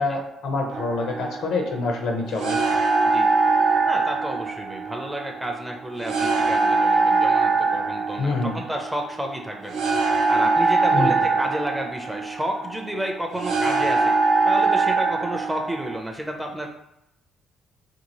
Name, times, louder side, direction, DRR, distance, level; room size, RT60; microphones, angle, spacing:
voice 1, 0.0-2.6 8.2-8.6 10.9-11.1, left 3 dB, 70° left, 1 dB, 0.6 m, -26 dB
sound 1, 0.7-16.0, right 4 dB, 75° right, 0.5 m, -23 dB
voice 2, 3.0-3.4 3.9-14.2 14.4-16.7, right 1 dB, 5° right, 2 dB, 0.4 m, -31 dB
2.8 x 2.7 x 2.9 m, 0.84 s
cardioid pair, 135°, 0 cm